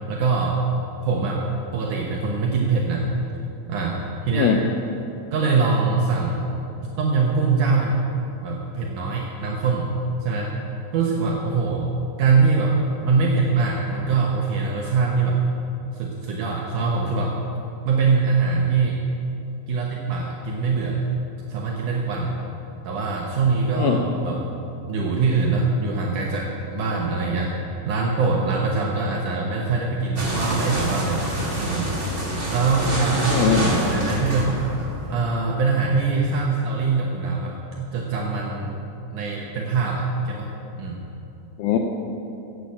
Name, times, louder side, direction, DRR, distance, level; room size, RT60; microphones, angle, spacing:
voice 1, 0.1-0.6 1.0-1.4 1.7-3.1 3.7-4.6 5.3-6.5 7.0-8.0 8.4-9.9 10.2-10.5 10.9-11.8 12.2-15.7 15.9-17.3 17.9-19.0 19.7-21.1 21.5-22.3 22.8-24.5 24.9-27.6 27.9-31.3 31.6-31.9 32.5-34.6 35.1-38.8 39.1-40.5 40.8-41.0, right 4 dB, 75° right, -2 dB, 1.9 m, -23 dB
sound 1, 30.2-35.1, right 1 dB, 20° right, 2.5 m, -27 dB
voice 2, 33.3-33.8 41.6-41.8, left 8 dB, 85° left, 3 dB, 2.2 m, -21 dB
16.0 x 8.0 x 8.4 m, 2.9 s
omnidirectional pair, 5.1 m